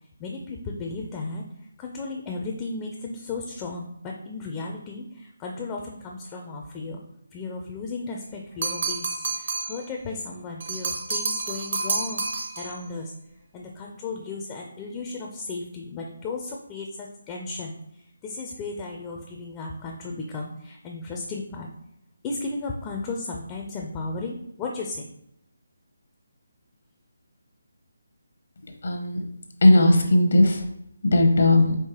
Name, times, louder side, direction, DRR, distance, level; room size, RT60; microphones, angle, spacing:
voice 1, 0.2-1.4 1.8-7.0 7.3-13.1 13.5-21.7 22.2-25.1, left 3 dB, 20° left, 0 dB, 0.4 m, -35 dB
sound 1, 8.6-9.8 10.6-12.8, right 4 dB, 55° right, 0.8 m, -29 dB
voice 2, 28.6-29.2 29.6-30.6 31.0-31.8, left 1 dB, 65° left, 3 dB, 0.7 m, -18 dB
4.7 x 3.2 x 2.9 m, 0.76 s
figure-of-eight pair, 155°, 0 cm